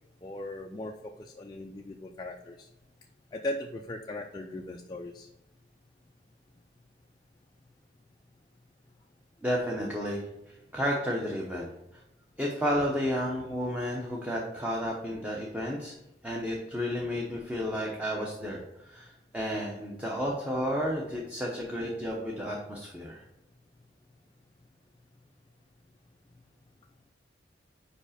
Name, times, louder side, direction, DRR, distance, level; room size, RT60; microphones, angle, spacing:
voice 1, 0.2-2.7 3.3-5.3, left 1 dB, 25° left, 2 dB, 0.4 m, -38 dB
voice 2, 9.4-10.2 10.7-11.7 12.4-15.9 16.2-18.6 18.9-23.2, equal, 10° right, -3 dB, 0.8 m, -32 dB
5.2 x 4.9 x 5.0 m, 0.93 s
head